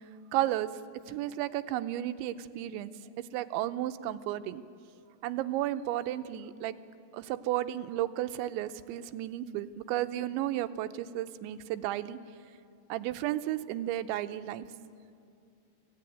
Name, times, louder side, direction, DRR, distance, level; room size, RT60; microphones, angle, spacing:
voice 1, 0.3-0.7 1.1-2.9 3.3-4.6 5.2-6.8 7.1-12.2 12.9-14.7, right 13 dB, 90° right, 10 dB, 3.1 m, -33 dB
25.0 x 16.0 x 9.2 m, 2.4 s
omnidirectional pair, 5.2 m